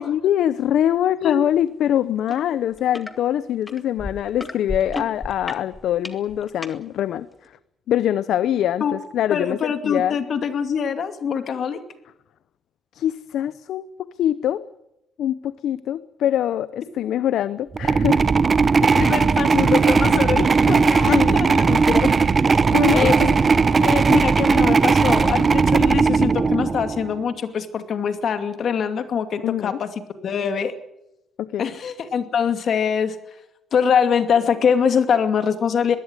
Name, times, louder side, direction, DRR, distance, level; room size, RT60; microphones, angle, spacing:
voice 1, 0.0-7.5 7.9-10.2 12.9-14.6 15.2-18.3 21.1-21.4 22.7-23.1 29.4-29.8 31.4-31.7, left 11 dB, 75° left, 15 dB, 0.7 m, -23 dB
sound 1, 2.3-2.4 2.7-3.1 3.7-6.7 7.4-7.5, left 2 dB, 20° left, 1.9 m, -32 dB
voice 2, 9.3-11.8 18.8-22.2 22.9-23.4 23.8-29.9 30.2-30.7 31.6-33.2 33.7-36.0, left 7 dB, 60° left, 9 dB, 2.4 m, -23 dB
sound 2, 17.7-27.1, right 5 dB, 35° right, 1.1 m, -17 dB
21.5 x 16.5 x 9.7 m, 0.88 s
cardioid pair, 90°, 0 cm